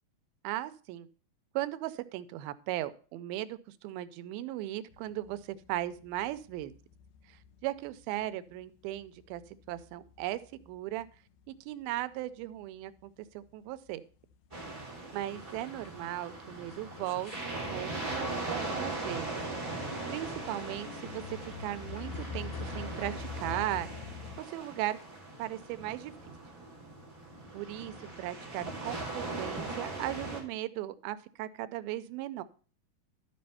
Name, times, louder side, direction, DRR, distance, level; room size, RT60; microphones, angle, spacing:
voice 1, 0.4-1.1 1.6-6.7 7.3-9.4 9.7-10.4 10.7-11.1 11.5-14.0 15.1-19.3 20.1-24.1 24.4-25.0 25.4-26.1 27.5-32.4, right 14 dB, 85° right, 13 dB, 2.4 m, -37 dB
sound 1, 4.9-11.6 11.9-13.0 13.4-13.5 13.9-14.0 14.2-16.0 16.4-24.4, left 6 dB, 80° left, 2.5 m, -46 dB
sound 2, 14.5-30.4, right 2 dB, 10° right, 2.3 m, -40 dB
12.5 x 4.3 x 5.5 m, 0.40 s
omnidirectional pair, 4.3 m